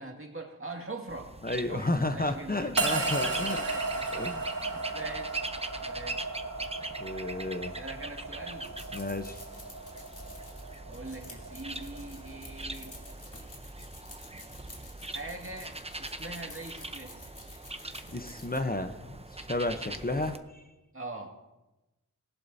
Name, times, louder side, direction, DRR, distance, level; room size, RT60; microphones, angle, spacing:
voice 1, 0.0-4.1 4.6-5.4 5.8-6.3 7.6-8.7 10.9-13.0 15.1-17.2 20.9-21.4, right 2 dB, 40° right, 1 dB, 2.0 m, -42 dB
sound 1, 1.1-20.4, right 2 dB, 20° right, 0.7 m, -42 dB
voice 2, 1.4-3.6 4.1-4.4 7.0-7.7 8.9-9.4 18.1-20.6, left 2 dB, 25° left, 7 dB, 0.8 m, -32 dB
sound 2, 2.8-13.1, right 3 dB, 75° right, 2.0 m, -36 dB
sound 3, 8.5-18.6, left 2 dB, 65° left, 3.1 m, -51 dB
19.5 x 11.0 x 2.7 m, 1.0 s
wide cardioid pair, 55°, 33 cm